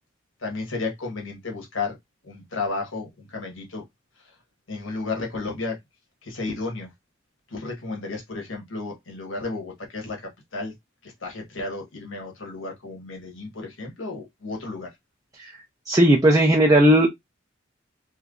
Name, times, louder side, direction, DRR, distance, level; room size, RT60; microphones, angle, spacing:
voice 1, 0.4-2.0 2.2-3.8 4.7-5.8 6.2-6.9 7.5-10.7 11.0-14.9, left 3 dB, 85° left, 1.3 m, -33 dB
voice 2, 15.9-17.1, right 1 dB, 20° right, 0.6 m, -16 dB
3.3 x 2.9 x 2.4 m
head